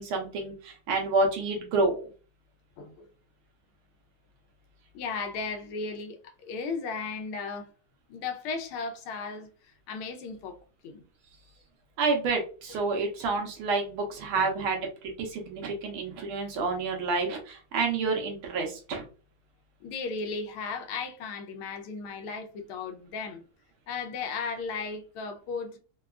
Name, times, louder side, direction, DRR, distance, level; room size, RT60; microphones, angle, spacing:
voice 1, 0.0-2.0 12.0-19.0, right 3 dB, 80° right, 1.7 m, -29 dB
voice 2, 2.8-3.1 4.9-7.7 8.1-10.6 10.8-11.0 14.3-14.5 19.8-23.4 23.9-25.8, left 4 dB, 90° left, 1.6 m, -35 dB
4.7 x 2.3 x 2.3 m
omnidirectional pair, 2.3 m